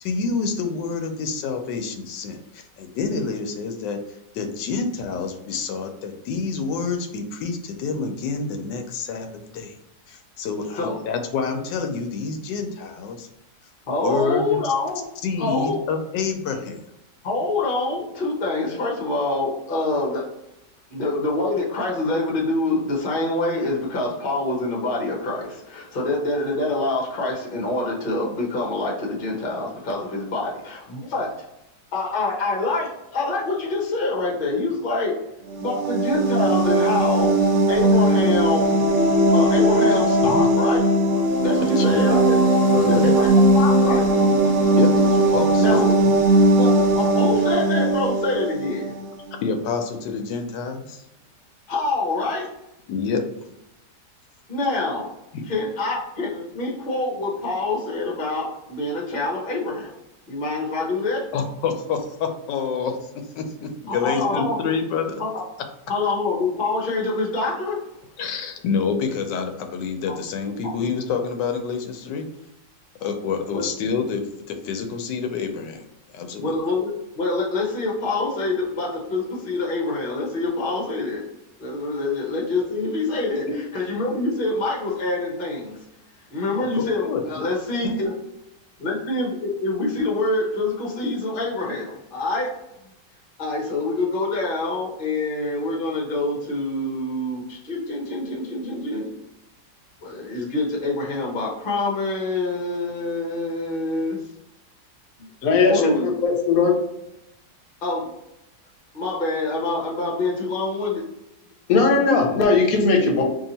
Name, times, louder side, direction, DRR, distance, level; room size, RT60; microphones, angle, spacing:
voice 1, 0.0-4.0 4.3-9.3 9.5-9.8 10.1-13.3 14.0-14.6 15.2-16.8 40.2-40.5 41.6-42.0 42.7-43.1 44.8-46.2 49.4-51.0 52.9-53.2 55.3-55.5 61.3-63.1 63.3-65.2 68.2-72.3 73.0-75.8 76.1-76.6 86.6-87.4 87.8-88.1, left 5 dB, 85° left, 5 dB, 1.2 m, -27 dB
voice 2, 13.9-15.0 15.4-15.8 17.2-20.2 20.9-31.3 31.9-35.2 35.6-37.3 37.7-38.8 39.3-40.8 41.4-42.4 42.9-44.1 45.6-46.0 46.5-48.9 51.7-52.5 54.5-55.1 55.5-59.9 60.3-61.3 63.9-64.7 65.2-65.4 65.9-67.8 70.6-70.7 73.5-73.6 76.4-81.2 81.6-85.8 86.3-88.1 88.8-92.5 93.4-99.1 100.0-104.2 105.6-106.1 107.8-108.1 108.9-111.1, left 2 dB, 40° left, -2 dB, 0.9 m, -26 dB
sound 1, 35.5-49.1, right 1 dB, 70° right, 0.7 m, -18 dB
voice 3, 105.4-106.8 111.7-113.2, left 4 dB, 65° left, 3 dB, 1.0 m, -18 dB
3.1 x 2.7 x 3.9 m, 0.87 s
omnidirectional pair, 1.8 m